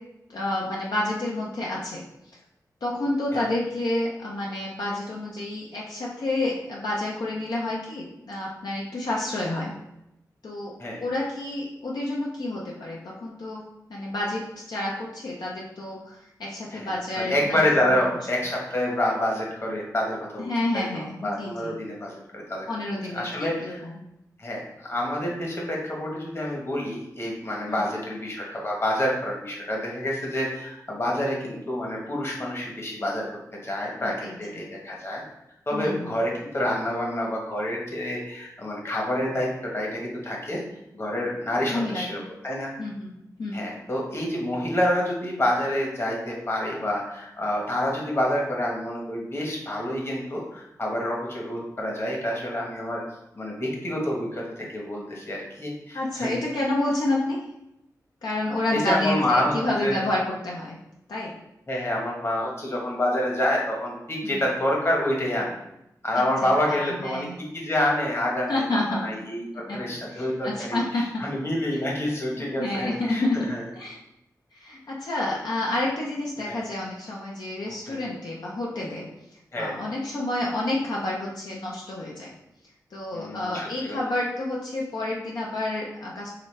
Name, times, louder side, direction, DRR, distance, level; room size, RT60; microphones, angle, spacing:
voice 1, 0.3-2.0 2.8-9.7 10.4-10.7 11.0-13.6 13.9-14.4 14.7-17.6 20.4-21.8 22.7-24.0 27.7-27.9 34.0-34.3 35.7-36.2 41.7-42.2 42.8-43.1 43.4-43.6 55.9-57.4 58.2-60.8 61.1-61.3 64.2-64.4 66.4-67.3 68.5-69.1 69.7-69.8 70.1-71.2 72.6-73.4 73.8-74.0 74.5-79.0 79.6-82.3 82.9-86.3, left 1 dB, 75° left, -4 dB, 0.7 m, -29 dB
voice 2, 16.7-22.7 23.1-23.8 24.4-33.3 33.5-35.2 35.7-40.6 40.9-42.7 43.5-53.0 53.3-56.3 58.7-60.0 61.7-65.5 66.0-73.2 73.5-73.6 76.4-76.6 77.8-78.0 79.5-79.7 83.1-84.0, left 1 dB, 40° left, -2 dB, 1.2 m, -28 dB
4.0 x 3.2 x 3.3 m, 0.85 s
cardioid pair, 65°, 7 cm